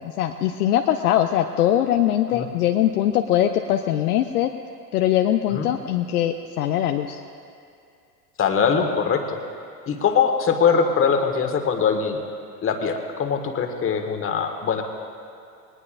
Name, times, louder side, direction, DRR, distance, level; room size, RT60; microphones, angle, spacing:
voice 1, 0.0-4.5 4.9-7.2, left 11 dB, 65° left, 5 dB, 0.8 m, -21 dB
voice 2, 8.4-9.4 9.9-12.2 12.6-14.8, left 6 dB, 25° left, 5 dB, 1.5 m, -22 dB
20.5 x 19.0 x 2.5 m, 2.4 s
figure-of-eight pair, 85°, 49 cm